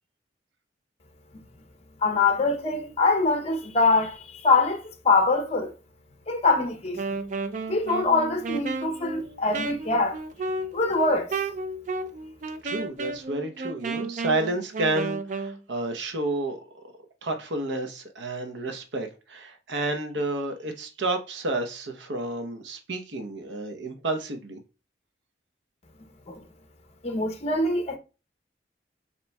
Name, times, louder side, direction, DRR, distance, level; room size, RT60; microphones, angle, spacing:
voice 1, 2.0-5.7 6.3-7.0 7.7-10.2 10.7-11.3 26.3-26.4 27.0-28.0, left 3 dB, 35° left, 0.6 m, -23 dB
Wind instrument woodwind instrument, 6.9-15.6, right 3 dB, 45° right, 0.4 m, -33 dB
voice 2, 12.6-16.6 17.2-24.6, right 2 dB, 85° right, 0.8 m, -30 dB
6.9 x 2.9 x 2.2 m
head